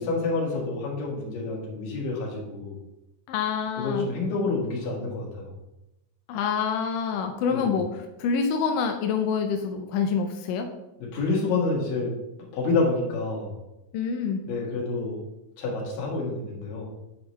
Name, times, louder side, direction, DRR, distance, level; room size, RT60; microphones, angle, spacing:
voice 1, 0.0-2.8 3.7-5.5 7.5-7.8 11.0-12.1 12.4-13.5 14.4-15.2 15.6-16.9, left 3 dB, 65° left, -3 dB, 3.0 m, -28 dB
voice 2, 3.3-4.1 6.3-10.7 13.9-14.4, left 6 dB, 80° left, 4 dB, 1.9 m, -27 dB
9.7 x 4.9 x 3.1 m, 0.95 s
omnidirectional pair, 4.4 m